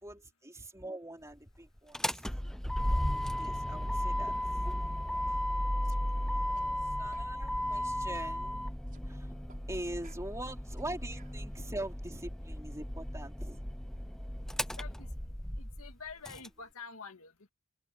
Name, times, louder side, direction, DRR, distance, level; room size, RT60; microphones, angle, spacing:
voice 1, 0.0-2.3 3.4-4.6 5.3-5.4 6.3-6.4 6.8-8.8 9.1-9.3 9.7-13.6, right 1 dB, 15° right, 3.8 m, -43 dB
Motor vehicle (road), 1.8-16.5, equal, ahead, 0.3 m, -35 dB
sound 1, 5.8-6.0 6.5-6.7 7.1-7.3 7.7-7.9 8.1-9.1 9.5-9.6 10.0-11.4, right 4 dB, 40° right, 5.8 m, -61 dB
voice 2, 14.8-15.1 15.5-17.5, left 5 dB, 70° left, 2.0 m, -47 dB
head